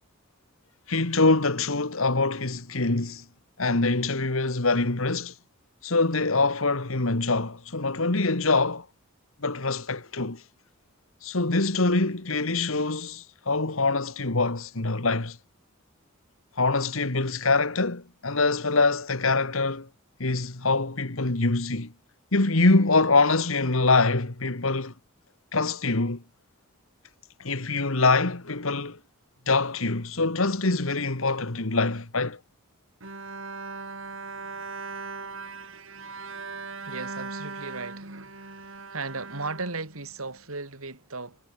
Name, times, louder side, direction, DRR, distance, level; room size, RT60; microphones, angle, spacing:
voice 1, 0.9-3.2 3.6-5.3 5.8-8.9 9.4-10.4 11.2-15.4 16.6-19.9 20.2-21.9 22.3-24.9 25.5-26.2 27.4-29.0 29.5-32.4, left 3 dB, 70° left, 1.8 m, -24 dB
Bowed string instrument, 33.0-40.4, right 4 dB, 65° right, 4.9 m, -39 dB
voice 2, 36.9-38.2 38.9-41.4, right 3 dB, 80° right, 3.7 m, -36 dB
head